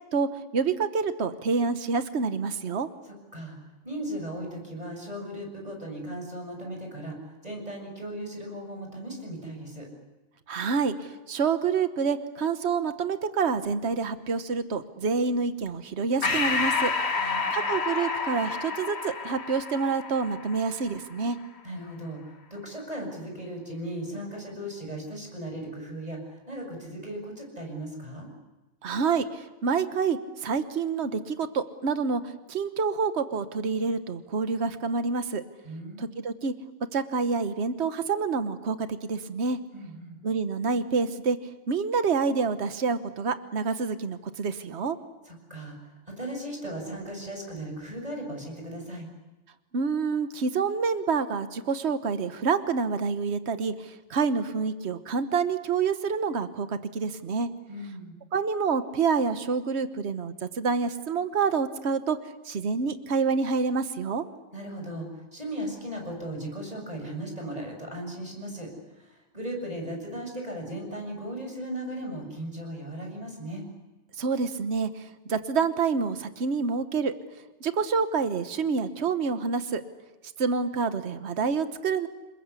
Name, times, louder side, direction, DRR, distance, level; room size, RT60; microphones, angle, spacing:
voice 1, 0.5-2.9 10.5-16.9 17.2-21.4 28.8-35.4 36.0-36.5 36.9-39.6 40.2-41.4 41.7-45.0 49.7-57.5 58.3-62.2 62.4-64.2 74.2-77.1 77.6-79.8 80.4-82.1, right 5 dB, 65° right, 10 dB, 1.4 m, -27 dB
voice 2, 3.0-3.6 3.8-9.9 17.2-17.6 21.6-28.3 35.6-36.1 39.7-40.2 45.3-49.1 57.7-58.2 64.5-73.6, right 1 dB, 30° right, 2 dB, 7.1 m, -37 dB
Breathing, 16.2-21.1, left 4 dB, 60° left, 1.8 m, -29 dB
28.5 x 21.0 x 8.4 m, 1.1 s
omnidirectional pair, 1.2 m